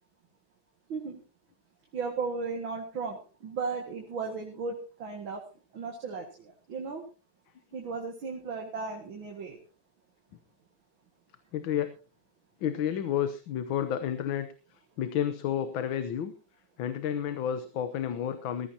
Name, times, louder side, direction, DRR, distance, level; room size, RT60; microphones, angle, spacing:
voice 1, 1.9-5.4 5.7-7.0 7.7-9.6, right 4 dB, 80° right, 1 dB, 2.6 m, -35 dB
voice 2, 11.5-11.9 12.6-16.3 16.8-18.7, left 9 dB, 75° left, 11 dB, 1.7 m, -31 dB
19.0 x 14.5 x 2.8 m, 0.34 s
omnidirectional pair, 2.2 m